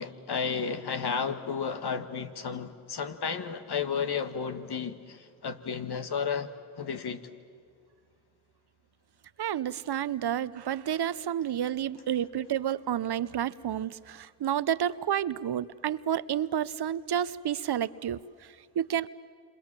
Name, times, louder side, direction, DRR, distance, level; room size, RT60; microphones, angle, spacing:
voice 1, 0.0-6.5 6.8-7.2, left 6 dB, 75° left, 8 dB, 1.7 m, -32 dB
voice 2, 9.4-19.1, right 10 dB, 75° right, 17 dB, 0.8 m, -30 dB
28.5 x 27.0 x 7.5 m, 2.1 s
cardioid pair, 40°, 39 cm